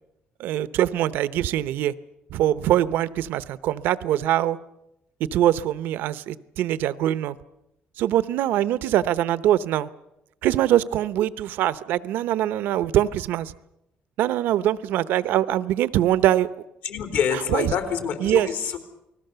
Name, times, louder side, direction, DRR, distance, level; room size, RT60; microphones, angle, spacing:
voice 1, 0.4-1.9 2.3-4.6 5.2-7.4 8.0-9.9 10.4-13.5 14.2-16.5 17.3-17.7 18.2-18.5, right 12 dB, 85° right, 0.8 m, -23 dB
voice 2, 16.8-18.8, left 7 dB, 80° left, 3.7 m, -26 dB
29.0 x 20.0 x 6.9 m
cardioid pair, 140°, 3 cm